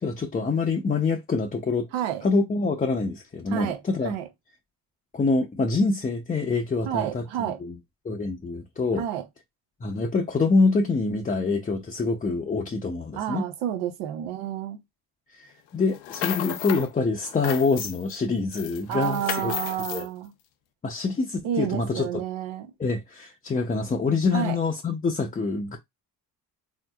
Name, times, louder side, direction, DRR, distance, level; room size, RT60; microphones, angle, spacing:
voice 1, 0.0-1.9 2.2-4.1 5.1-7.2 7.6-7.8 8.0-9.0 9.8-13.5 15.4-19.5 19.9-20.1 20.8-22.1 22.8-25.8, left 3 dB, 20° left, 0.5 m, -25 dB
voice 2, 1.9-2.2 3.5-4.3 6.8-7.6 9.0-9.2 13.1-14.8 18.9-20.3 21.4-22.7 24.3-24.6, right 10 dB, 85° right, 0.8 m, -30 dB
sound 1, 15.9-16.9 17.2-18.2 18.5-20.1, left 11 dB, 80° left, 0.6 m, -33 dB
3.6 x 2.6 x 2.3 m
supercardioid pair, 70°, 43 cm